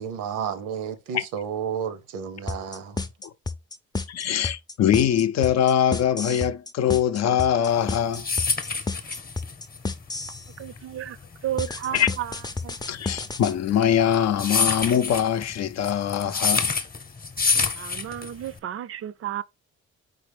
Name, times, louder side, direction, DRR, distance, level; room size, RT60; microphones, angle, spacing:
voice 1, 0.0-3.0, right 7 dB, 85° right, 0.8 m, -31 dB
sound 1, 2.5-10.5 11.6-13.5, left 3 dB, 15° left, 0.5 m, -31 dB
voice 2, 4.1-8.3 11.9-12.1 12.9-16.7, left 9 dB, 60° left, 0.5 m, -23 dB
sound 2, 7.8-18.6, left 4 dB, 30° left, 0.9 m, -27 dB
voice 3, 10.6-12.3 12.6-12.8 17.8-19.4, right 12 dB, 50° right, 0.4 m, -32 dB
4.0 x 3.9 x 3.4 m
cardioid pair, 90°, 30 cm